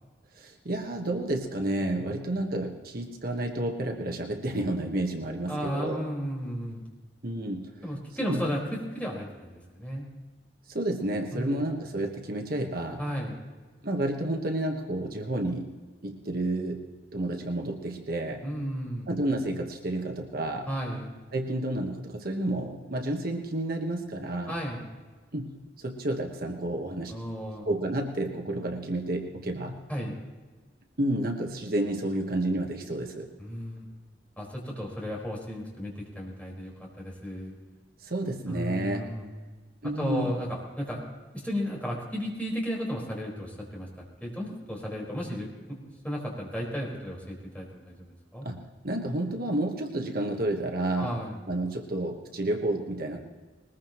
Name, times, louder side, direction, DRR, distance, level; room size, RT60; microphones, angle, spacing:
voice 1, 0.3-6.0 7.2-7.8 8.2-8.5 10.7-13.0 13.8-15.7 16.0-18.4 19.1-20.7 21.3-24.5 25.3-27.2 27.6-29.8 31.0-33.3 38.0-39.1 39.8-40.3 48.4-51.2 51.5-53.2, right 1 dB, 55° right, 3 dB, 1.3 m, -30 dB
voice 2, 5.5-6.8 7.8-10.0 11.3-11.6 13.0-13.4 18.4-19.2 20.7-21.1 24.5-24.9 27.1-27.7 29.9-30.1 33.4-33.9 34.4-37.5 38.5-39.3 40.0-41.0 41.3-43.9 44.2-45.8 46.0-48.5 51.0-51.4, equal, 10° left, -3 dB, 4.8 m, -34 dB
21.0 x 20.5 x 3.1 m, 1.3 s
head